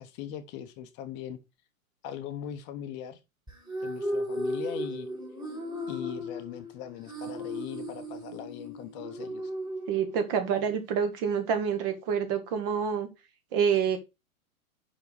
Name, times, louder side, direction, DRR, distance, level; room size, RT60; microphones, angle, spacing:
voice 1, 0.0-1.4 2.0-3.2 3.8-5.1 5.9-9.5, left 9 dB, 25° left, 0.7 m, -40 dB
sound 1, 3.5-10.5, equal, 10° right, 2.4 m, -36 dB
voice 2, 9.9-13.1 13.5-14.0, right 7 dB, 40° right, 1.6 m, -27 dB
5.5 x 4.6 x 4.9 m
figure-of-eight pair, 100°, 42 cm